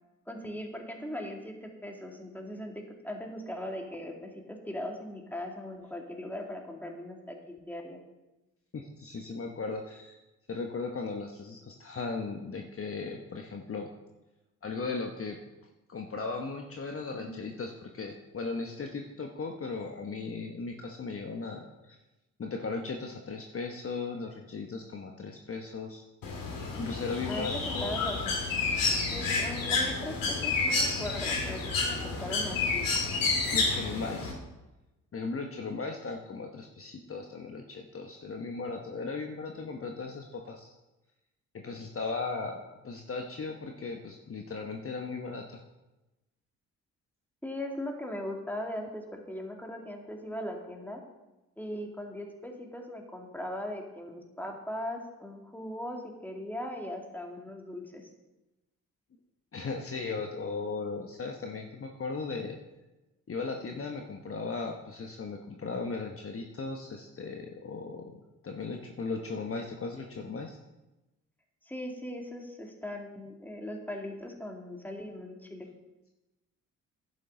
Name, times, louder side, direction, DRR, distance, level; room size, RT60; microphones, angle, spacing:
voice 1, 0.3-8.0 17.1-17.3 27.3-28.3 29.1-32.9 47.4-51.0 51.6-58.1 71.6-75.7, left 1 dB, 5° left, 1 dB, 2.4 m, -39 dB
voice 2, 8.7-10.2 10.5-13.9 14.6-15.4 15.9-22.0 22.4-26.0 26.8-28.0 33.5-34.4 35.1-40.7 41.5-42.6 42.8-45.6 59.5-62.6 63.3-70.6, left 4 dB, 35° left, 3 dB, 1.1 m, -37 dB
Bird, 26.2-34.3, left 4 dB, 60° left, 2.5 m, -30 dB
11.5 x 8.5 x 3.9 m, 1.0 s
hypercardioid pair, 45°, 37 cm